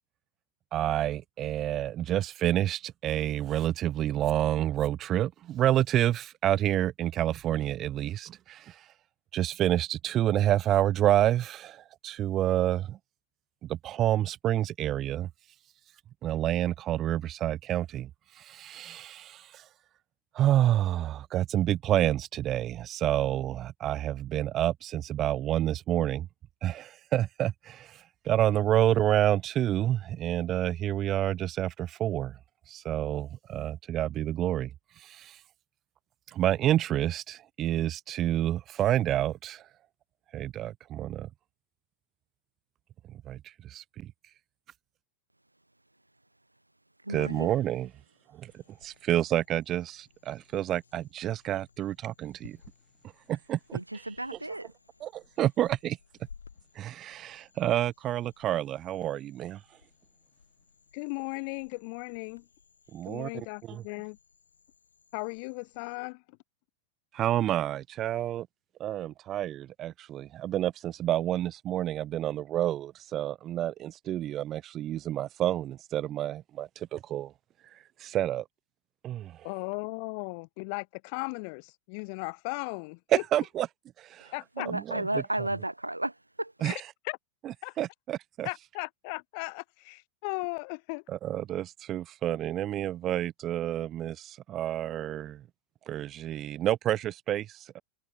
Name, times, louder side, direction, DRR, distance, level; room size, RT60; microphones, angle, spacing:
voice 1, 0.7-8.9 9.3-13.0 13.6-15.3 16.2-19.7 20.3-26.3 26.6-32.4 32.7-35.4 36.3-39.7 40.3-41.3 43.1-44.1 47.1-47.9 48.3-52.6 53.3-54.0 55.0-56.0 56.7-59.8 62.9-63.8 67.1-68.5 68.8-77.3 77.6-78.4 79.0-79.5 83.1-83.7 84.0-84.3 84.7-85.1 85.4-85.5 86.6-86.9 87.4-88.5 91.1-95.4 95.9-97.8, right 12 dB, 30° right, 0.6 m, -29 dB
voice 2, 47.0-47.5 53.7-54.7 84.2-86.5, right 1 dB, 85° right, 2.7 m, -33 dB
sound 1, 48.5-66.0, left 6 dB, 75° left, 5.9 m, -59 dB
voice 3, 60.9-62.5 63.1-64.2 65.1-66.4 79.4-83.2 84.3-84.7 86.6-87.2 87.6-87.7 88.4-91.0, left 35 dB, 45° left, 1.3 m, -37 dB
figure-of-eight pair, 90°, 0 cm